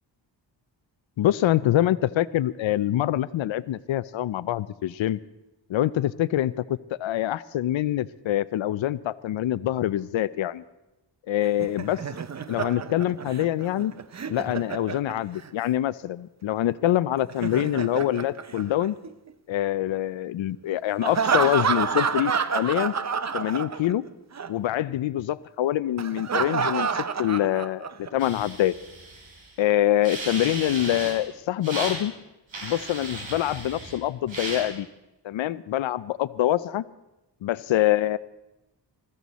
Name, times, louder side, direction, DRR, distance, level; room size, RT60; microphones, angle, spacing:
voice 1, 1.2-5.2 5.7-10.6 11.3-12.0 12.5-13.9 14.3-19.0 19.5-22.9 23.3-24.0 24.5-28.7 29.6-32.1 32.6-34.9 35.2-36.8 37.4-38.2, left 13 dB, 85° left, 16 dB, 0.5 m, -25 dB
Laughter, 11.4-15.5 17.2-19.3 21.0-24.1 24.3-24.5 26.0-28.1, right 6 dB, 35° right, 0.7 m, -28 dB
sound 1, 28.2-29.5 30.0-31.2 31.6-32.0 32.5-34.0 34.3-34.6, right 2 dB, 80° right, 3.8 m, -35 dB
20.5 x 14.0 x 4.1 m, 0.95 s
wide cardioid pair, 90°, 45 cm